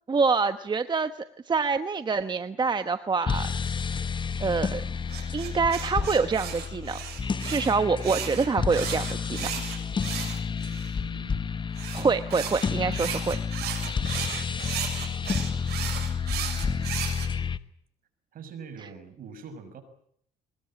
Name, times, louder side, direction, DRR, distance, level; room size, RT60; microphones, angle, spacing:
voice 1, 0.1-1.1 1.5-3.8 4.4-4.8 5.3-7.0 7.5-9.5 11.9-13.4, right 4 dB, 25° right, 10 dB, 1.2 m, -26 dB
sound 1, 3.2-17.6, left 6 dB, 30° left, 1.1 m, -30 dB
sound 2, 5.1-10.9 11.7-17.3, right 10 dB, 75° right, 6.7 m, -35 dB
voice 2, 11.0-11.7 15.4-15.9 16.6-17.1 18.3-19.8, right 6 dB, 55° right, 9 dB, 6.2 m, -45 dB
23.5 x 21.0 x 8.9 m, 0.67 s
cardioid pair, 110°, 17 cm